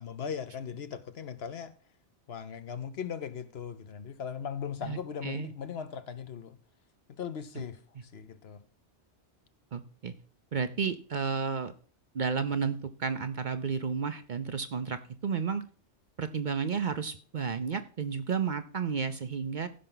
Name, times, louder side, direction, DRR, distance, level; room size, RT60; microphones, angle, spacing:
voice 1, 0.0-1.7 2.3-6.6 7.1-8.6, left 7 dB, 60° left, 1.0 m, -38 dB
voice 2, 4.8-5.5 7.6-7.7 9.7-10.1 10.5-11.7 12.1-15.6 16.2-19.7, right 6 dB, 50° right, 0.7 m, -32 dB
15.5 x 5.5 x 3.9 m
omnidirectional pair, 1.2 m